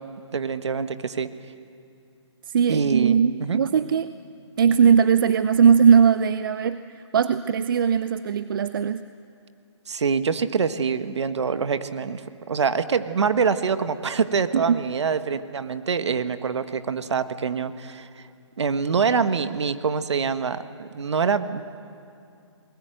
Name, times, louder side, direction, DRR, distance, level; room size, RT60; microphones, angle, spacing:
voice 1, 0.3-1.3 2.7-3.6 9.9-18.2 18.6-21.6, right 5 dB, 65° right, 11 dB, 1.4 m, -25 dB
voice 2, 2.5-4.1 4.6-6.8 7.1-9.1 14.7-14.8, right 7 dB, 45° right, 12 dB, 0.6 m, -19 dB
29.0 x 20.5 x 7.9 m, 2.6 s
hypercardioid pair, 150°, 16 cm